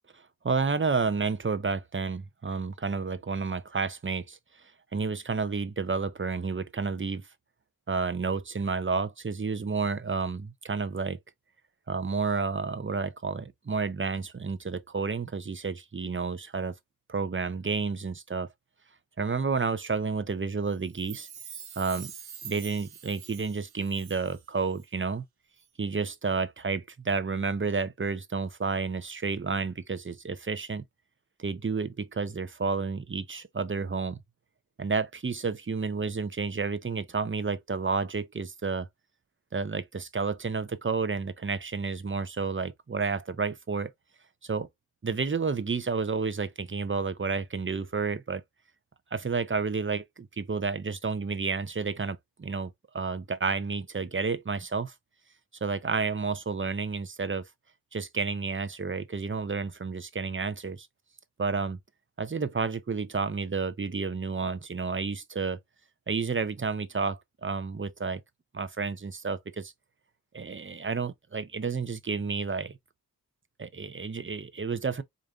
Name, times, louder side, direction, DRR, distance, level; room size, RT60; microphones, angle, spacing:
voice 1, 0.4-4.4 4.9-7.3 7.9-11.2 11.9-16.8 17.1-18.5 19.2-21.3 21.8-22.1 22.4-25.2 25.8-30.8 31.4-34.2 34.8-38.9 39.5-43.9 44.4-44.7 45.0-48.4 49.1-54.9 55.6-57.5 57.9-60.9 61.4-61.8 62.2-65.6 66.1-68.2 68.5-69.7 70.3-72.8 73.6-75.0, right 4 dB, 35° right, 0.6 m, -30 dB
Chime, 20.8-24.5 24.7-24.8, right 7 dB, 85° right, 0.7 m, -45 dB
5.0 x 2.7 x 2.4 m
wide cardioid pair, 45°, 37 cm